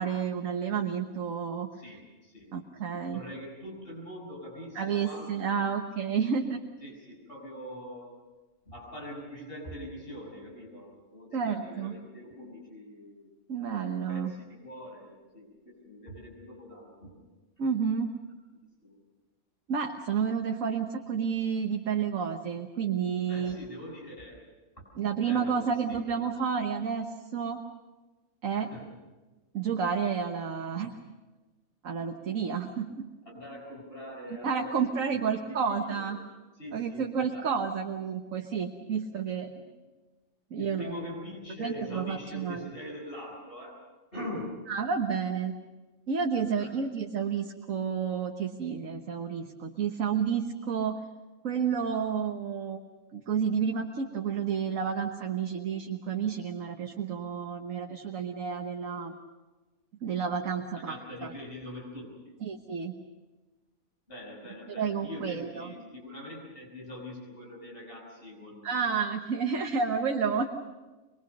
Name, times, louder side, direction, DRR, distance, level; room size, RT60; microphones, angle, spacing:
voice 1, 0.0-1.7 2.5-3.2 4.7-6.6 11.3-11.9 13.5-14.3 17.6-18.1 19.7-23.6 25.0-27.6 28.4-28.7 29.5-31.0 31.8-33.1 34.4-36.2 36.7-39.5 40.5-41.0 41.6-42.7 44.7-45.6 46.1-51.0 51.4-52.8 53.1-59.2 60.0-61.3 62.4-63.0 64.7-65.7 68.6-70.4, right 6 dB, 65° right, 3 dB, 1.6 m, -30 dB
voice 2, 1.7-2.5 2.8-5.5 6.2-6.3 6.8-8.1 8.6-13.3 14.1-17.1 18.5-19.0 23.3-24.5 25.2-26.3 28.5-28.8 33.2-36.0 36.6-37.4 40.5-43.8 44.1-44.6 46.6-46.7 60.8-62.1 64.1-69.0, left 1 dB, 40° left, -2 dB, 6.4 m, -43 dB
23.5 x 23.0 x 6.7 m, 1.2 s
omnidirectional pair, 1.5 m